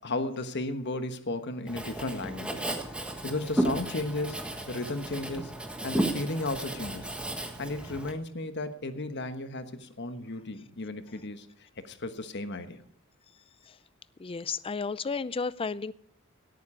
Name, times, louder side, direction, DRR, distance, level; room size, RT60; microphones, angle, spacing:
voice 1, 0.0-2.7 3.2-5.5 5.8-7.1 7.6-12.8, left 2 dB, 55° left, 10 dB, 1.2 m, -34 dB
Writing, 1.7-8.1, right 1 dB, 5° right, 1.5 m, -33 dB
voice 2, 14.2-15.9, left 5 dB, 25° left, 18 dB, 0.4 m, -32 dB
17.5 x 9.3 x 4.9 m, 0.66 s
head